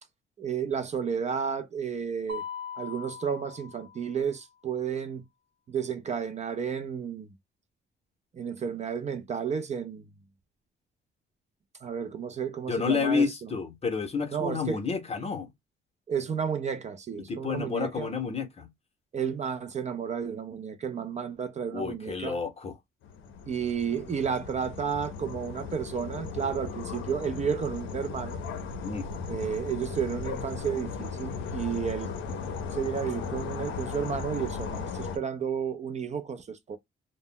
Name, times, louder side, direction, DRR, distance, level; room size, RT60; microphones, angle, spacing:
voice 1, 0.4-2.4 2.7-5.2 5.7-7.3 8.3-10.1 11.8-13.5 14.3-14.8 16.1-18.1 19.1-22.4 23.5-28.4 29.3-32.4 32.7-36.8, right 7 dB, 35° right, 0.4 m, -32 dB
Mallet percussion, 2.3-4.4, left 6 dB, 60° right, 0.8 m, -41 dB
voice 2, 12.7-15.5 17.3-18.7 21.7-22.7 28.8-29.1, left 5 dB, 30° left, 0.7 m, -30 dB
sound 1, 23.0-35.2, left 5 dB, 80° left, 0.5 m, -37 dB
2.0 x 2.0 x 3.6 m
cardioid pair, 90°, 20 cm